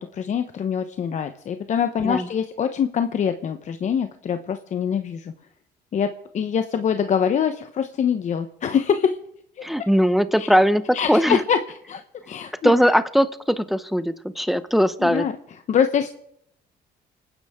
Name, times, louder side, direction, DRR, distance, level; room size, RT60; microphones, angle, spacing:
voice 1, 0.0-5.3 5.9-9.2 9.6-9.7 10.4-10.5 10.9-11.6 11.9-12.7 15.0-15.3 15.7-16.1, left 7 dB, 45° left, 8 dB, 0.9 m, -24 dB
voice 2, 9.6-11.4 12.6-15.3, equal, ahead, 13 dB, 0.8 m, -20 dB
30.0 x 10.0 x 3.6 m, 0.72 s
cardioid pair, 110°, 17 cm